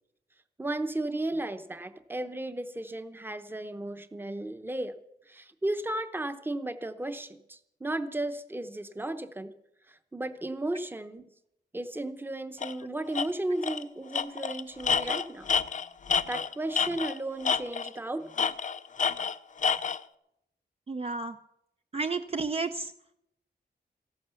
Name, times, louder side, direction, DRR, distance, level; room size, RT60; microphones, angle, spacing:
voice 1, 0.6-5.0 5.3-9.5 9.9-11.3 11.7-15.5 16.3-18.5, right 1 dB, 10° right, 9 dB, 0.8 m, -34 dB
Tools, 12.6-12.7 13.1-13.3 13.6-13.8 14.1-17.2 17.5-18.0 18.4-20.0, left 6 dB, 45° left, 0.5 m, -28 dB
voice 2, 20.9-21.4 21.9-22.9, right 4 dB, 35° right, 7 dB, 0.5 m, -31 dB
15.0 x 11.5 x 6.9 m, 0.80 s
wide cardioid pair, 160°, 18 cm